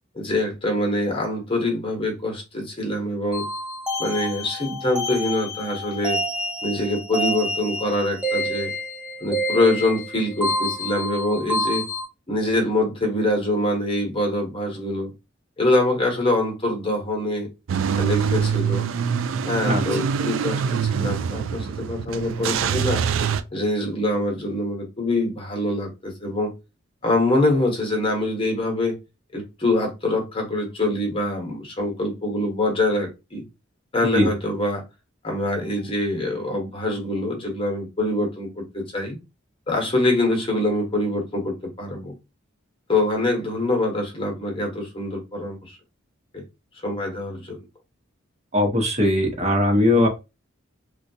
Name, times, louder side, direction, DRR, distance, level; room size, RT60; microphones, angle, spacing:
voice 1, 0.1-3.5 4.0-6.2 6.6-8.7 9.2-11.9 12.3-15.1 15.6-17.5 17.9-18.8 19.4-23.0 23.5-26.5 27.0-29.0 29.3-33.4 33.9-34.8 35.2-39.2 39.7-42.1 42.9-45.8 46.3-46.4 46.8-47.6, left 1 dB, 25° left, 1.0 m, -24 dB
sound 1, 3.3-12.0, equal, 5° right, 0.6 m, -28 dB
Car / Engine starting / Idling, 17.7-23.4, right 7 dB, 80° right, 0.3 m, -24 dB
voice 2, 48.5-50.1, left 1 dB, 35° right, 1.0 m, -19 dB
3.7 x 2.3 x 2.7 m
head